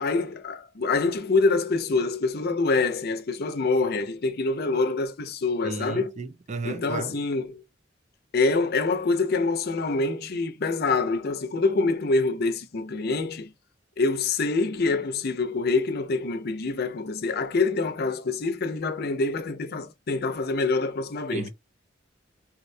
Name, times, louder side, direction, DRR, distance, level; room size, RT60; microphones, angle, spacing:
voice 1, 0.0-6.1 6.6-7.6 8.3-13.5 14.0-21.5, left 3 dB, 55° left, 0.6 m, -25 dB
voice 2, 5.6-7.2 21.3-21.5, right 4 dB, 40° right, 0.5 m, -34 dB
3.9 x 2.1 x 2.6 m
head